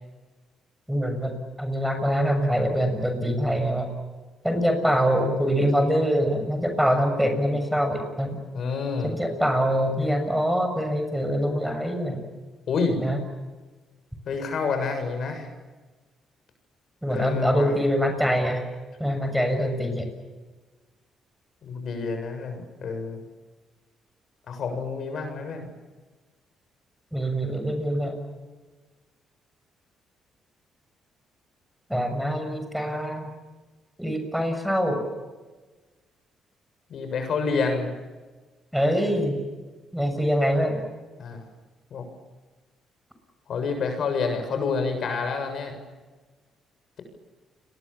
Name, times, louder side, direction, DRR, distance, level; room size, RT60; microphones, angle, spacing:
voice 1, 0.9-1.3 1.6-3.9 4.4-8.4 9.0-12.2 13.0-13.2 17.0-18.6 19.0-20.1 27.1-28.2 31.9-33.2 34.0-35.0 38.7-39.4 39.9-40.8, equal, ahead, 6 dB, 6.7 m, -24 dB
voice 2, 8.5-9.1 12.7-13.0 14.3-15.5 17.1-17.7 21.6-23.2 24.5-25.7 36.9-37.9 41.2-41.4 41.9-42.0 43.5-45.7, left 4 dB, 60° left, 6 dB, 7.3 m, -28 dB
29.5 x 22.5 x 7.3 m, 1.3 s
cardioid pair, 90°, 0 cm